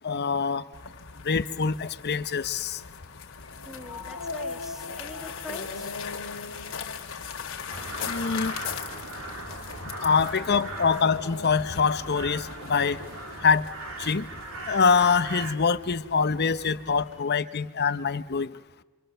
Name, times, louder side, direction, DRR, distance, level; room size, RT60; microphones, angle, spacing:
voice 1, 0.0-0.6 1.2-2.8 8.0-8.5 10.0-13.0 13.4-13.6 14.0-14.3 14.7-18.5, left 5 dB, 50° left, 13 dB, 0.8 m, -24 dB
sound 1, 0.7-17.2, left 7 dB, 65° left, 2.3 m, -41 dB
sound 2, 3.4-13.1, left 3 dB, 80° left, 2.0 m, -42 dB
voice 2, 3.6-6.0 10.2-10.8 17.1-17.2, left 1 dB, ahead, 5 dB, 1.6 m, -44 dB
sound 3, 7.7-15.5, right 2 dB, 70° right, 3.4 m, -39 dB
27.0 x 25.5 x 6.8 m, 1.2 s
head